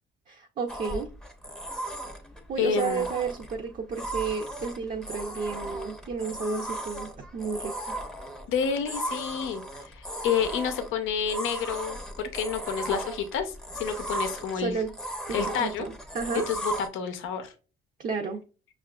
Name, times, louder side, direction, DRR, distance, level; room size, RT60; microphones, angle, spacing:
voice 1, 0.3-1.1 2.5-8.0 14.5-14.9 15.3-16.5 18.0-18.4, right 5 dB, 40° right, 3 dB, 0.5 m, -32 dB
sound 1, 0.7-16.9, right 1 dB, 5° left, 0.6 m, -37 dB
voice 2, 2.6-3.1 8.5-14.8 15.3-15.9 16.5-17.5, left 7 dB, 85° left, 7 dB, 0.6 m, -29 dB
5.7 x 2.4 x 2.2 m, 0.35 s
cardioid pair, 90°, 20 cm